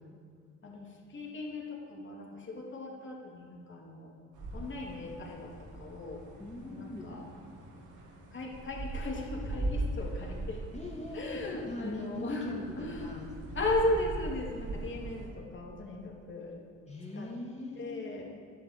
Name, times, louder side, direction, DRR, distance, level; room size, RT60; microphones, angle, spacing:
voice 1, 0.6-4.1 4.5-6.3 6.6-7.3 8.3-10.6 11.1-13.2 13.5-16.6 17.1-17.3 17.8-18.2, left 2 dB, 40° left, -2 dB, 3.2 m, -37 dB
sound 1, 4.3-15.3, right 2 dB, 75° right, 2.8 m, -40 dB
voice 2, 6.4-7.1 10.7-13.8 16.9-18.2, left 2 dB, 20° left, -1 dB, 2.4 m, -41 dB
12.5 x 10.5 x 7.8 m, 2.2 s
cardioid pair, 90°, 30 cm